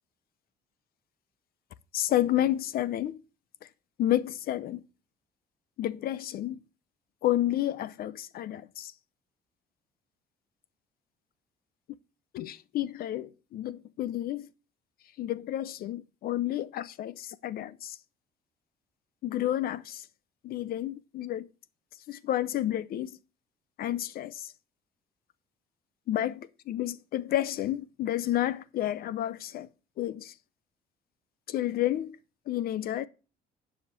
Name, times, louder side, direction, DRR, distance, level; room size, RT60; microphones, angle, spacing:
voice 1, 1.9-3.2 4.0-4.8 5.8-6.6 7.2-8.9 12.3-14.5 15.2-18.0 19.2-20.1 20.4-21.5 22.1-23.2 23.8-24.5 26.1-29.7 30.0-30.3 31.5-32.2 32.5-33.1, left 13 dB, 60° left, 0.6 m, -30 dB
10.0 x 5.0 x 6.7 m
cardioid pair, 110°, 17 cm